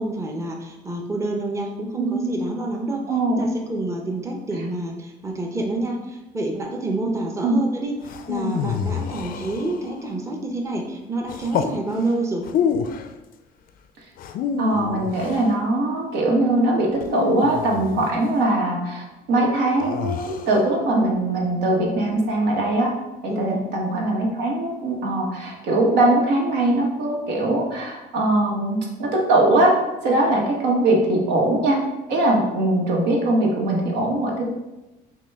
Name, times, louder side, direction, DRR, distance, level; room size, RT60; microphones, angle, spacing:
voice 1, 0.0-3.0 3.3-7.9 8.3-12.5 23.3-23.6, right 2 dB, 15° right, 1 dB, 0.6 m, -28 dB
voice 2, 2.0-2.3 3.1-3.5 7.4-7.6 14.6-22.9 23.2-29.7 30.0-31.8 32.1-34.4, right 2 dB, 85° right, -1 dB, 1.1 m, -21 dB
sound 1, 8.0-10.0 11.3-11.8 12.4-13.1 14.2-15.5 17.0-18.2 19.8-20.6, left 7 dB, 55° left, 0.4 m, -27 dB
5.8 x 2.3 x 3.4 m, 1.0 s
cardioid pair, 110°, 17 cm